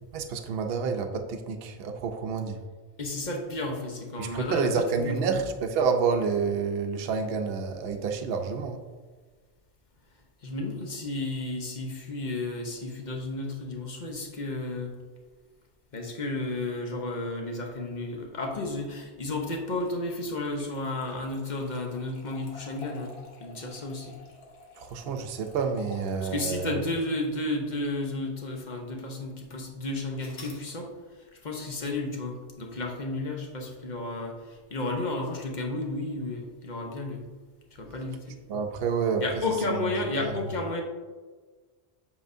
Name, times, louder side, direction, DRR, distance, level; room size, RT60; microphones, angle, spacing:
voice 1, 0.1-2.6 4.2-8.8 24.8-26.8 38.5-39.2 39.7-39.9 40.2-40.3, right 5 dB, 65° right, 5 dB, 0.8 m, -29 dB
voice 2, 3.0-5.4 10.4-14.9 15.9-24.2 26.2-37.2 37.7-38.4 39.2-40.8, left 2 dB, 45° left, 2 dB, 0.9 m, -32 dB
sound 1, 19.7-28.1 28.6-28.7 30.2-30.7, left 3 dB, 60° left, 1.3 m, -50 dB
7.6 x 4.9 x 2.6 m, 1.4 s
omnidirectional pair, 1.2 m